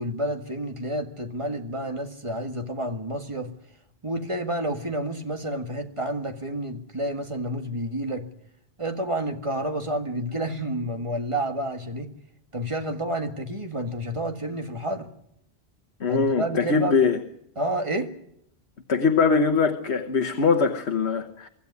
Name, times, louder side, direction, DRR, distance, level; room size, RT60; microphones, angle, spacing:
voice 1, 0.0-3.5 4.0-8.3 8.8-12.1 12.5-15.1 16.1-17.0 17.6-18.1, right 1 dB, 30° right, 5 dB, 1.9 m, -29 dB
voice 2, 16.0-17.2 18.9-21.5, left 5 dB, 80° left, 5 dB, 1.5 m, -22 dB
25.0 x 14.0 x 9.7 m, 0.76 s
omnidirectional pair, 1.1 m